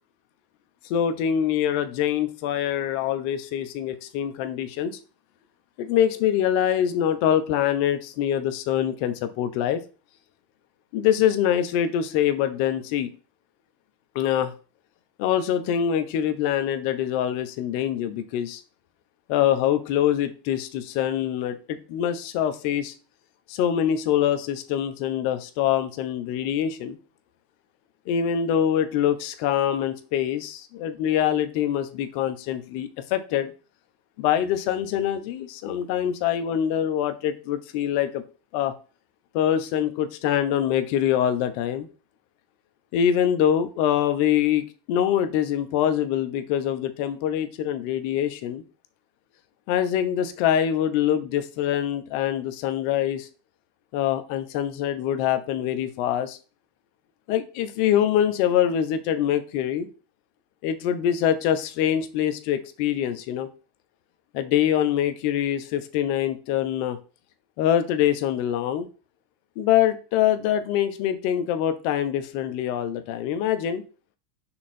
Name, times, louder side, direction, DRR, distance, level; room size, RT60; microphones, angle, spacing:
voice 1, 0.8-5.0 5.8-9.8 10.9-13.1 14.1-14.5 15.2-18.6 19.3-22.9 23.5-27.0 28.1-33.5 34.2-38.2 38.5-38.7 39.3-41.9 42.9-48.6 49.7-53.3 53.9-56.4 57.3-59.9 60.6-63.5 64.3-67.0 67.6-68.9 69.6-73.8, left 10 dB, 55° left, 10 dB, 0.9 m, -24 dB
5.8 x 3.8 x 4.3 m, 0.34 s
supercardioid pair, 130°, 0 cm